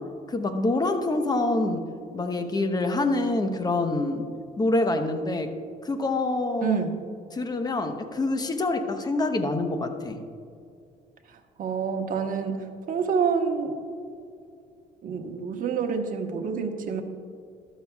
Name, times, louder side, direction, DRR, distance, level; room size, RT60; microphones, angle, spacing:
voice 1, 0.3-1.8 2.1-4.2 4.6-5.5 5.8-6.8 7.3-10.2, left 2 dB, 25° left, 7 dB, 1.0 m, -26 dB
voice 2, 6.6-6.9 11.6-13.7 15.0-17.0, right 6 dB, 55° right, 4 dB, 1.2 m, -27 dB
13.0 x 12.5 x 2.3 m, 2.4 s
cardioid pair, 110°, 17 cm